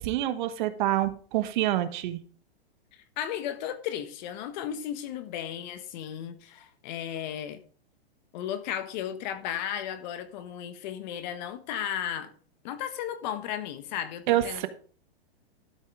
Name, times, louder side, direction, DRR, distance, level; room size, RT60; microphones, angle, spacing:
voice 1, 0.0-2.2 14.3-14.7, right 14 dB, 50° right, 1.2 m, -27 dB
voice 2, 2.9-7.6 8.3-12.3 12.6-14.7, left 10 dB, 45° left, 1.4 m, -35 dB
12.5 x 5.7 x 5.0 m
hypercardioid pair, 130°, 31 cm